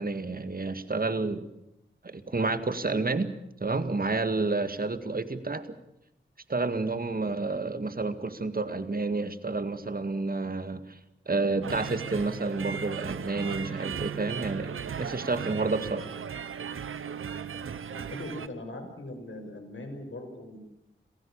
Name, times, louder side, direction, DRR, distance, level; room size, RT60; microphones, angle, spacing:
voice 1, 0.0-1.5 2.0-3.3 3.6-5.7 6.5-11.0 11.3-14.7 15.0-16.1, right 3 dB, 45° right, 10 dB, 2.0 m, -30 dB
sound 1, 11.6-18.5, right 7 dB, 90° right, 0.9 m, -37 dB
voice 2, 17.9-20.6, left 1 dB, 70° left, 5 dB, 5.7 m, -40 dB
28.0 x 15.5 x 8.8 m, 0.86 s
cardioid pair, 40°, 21 cm